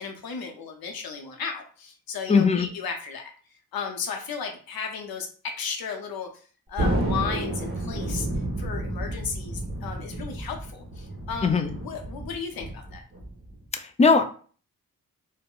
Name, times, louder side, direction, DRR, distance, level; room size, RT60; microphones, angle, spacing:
voice 1, 0.0-3.3 3.7-6.3 6.7-8.3 8.6-13.0, left 6 dB, 85° left, 3 dB, 0.6 m, -34 dB
voice 2, 2.3-2.7 11.4-11.7 13.7-14.2, left 4 dB, 20° left, 8 dB, 0.3 m, -20 dB
Thunder, 6.8-13.6, right 1 dB, 30° right, 0.9 m, -30 dB
3.6 x 2.1 x 2.3 m, 0.42 s
wide cardioid pair, 85°, 35 cm